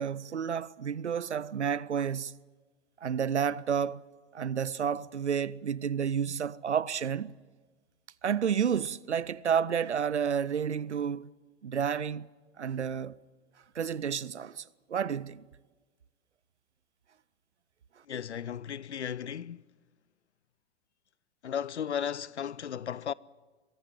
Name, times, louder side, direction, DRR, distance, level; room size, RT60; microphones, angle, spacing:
voice 1, 0.0-2.4 3.0-4.0 4.3-7.3 8.2-11.3 11.6-12.3 12.6-13.2 13.7-15.4, right 7 dB, 85° right, 0.7 m, -30 dB
voice 2, 18.1-19.7 21.4-23.1, left 8 dB, 80° left, 0.6 m, -35 dB
23.0 x 16.0 x 9.0 m
figure-of-eight pair, 95°, 33 cm